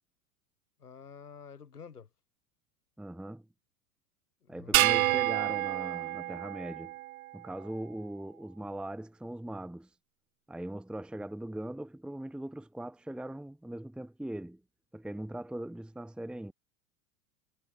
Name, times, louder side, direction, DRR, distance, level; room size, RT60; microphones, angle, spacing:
voice 1, 0.8-2.1 4.4-5.2, left 6 dB, 85° left, 7.0 m, -49 dB
voice 2, 3.0-3.4 4.5-6.9 7.3-9.9 10.5-14.6 14.9-16.5, right 1 dB, ahead, 1.1 m, -40 dB
sound 1, 4.7-7.3, right 15 dB, 65° right, 1.9 m, -28 dB
hypercardioid pair, 90°, 44 cm